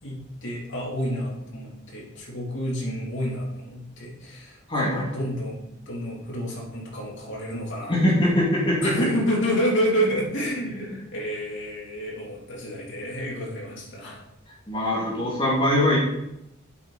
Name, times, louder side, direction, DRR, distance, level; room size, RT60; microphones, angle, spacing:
voice 1, 0.0-5.6 5.9-7.9 8.8-14.2, equal, 60° left, -3 dB, 3.2 m, -29 dB
voice 2, 4.7-5.1 7.9-8.9 14.7-16.0, left 1 dB, 25° left, -6 dB, 2.3 m, -22 dB
8.7 x 7.8 x 4.1 m, 0.84 s
head